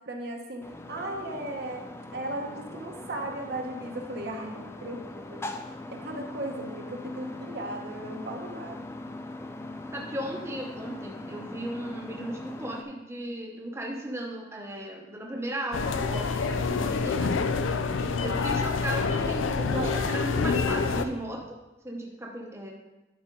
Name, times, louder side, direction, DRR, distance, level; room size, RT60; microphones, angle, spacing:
voice 1, 0.0-1.8 2.1-5.6 5.9-8.8 19.6-20.0, right 1 dB, 55° right, 2 dB, 0.9 m, -36 dB
sound 1, 0.6-12.8, left 2 dB, 15° left, 0.4 m, -41 dB
voice 2, 9.9-17.3 18.2-21.5 21.8-22.7, right 1 dB, 15° right, -1 dB, 0.8 m, -36 dB
sound 2, 15.7-21.0, left 4 dB, 85° left, 0.5 m, -27 dB
11.0 x 4.3 x 3.8 m, 1.0 s
head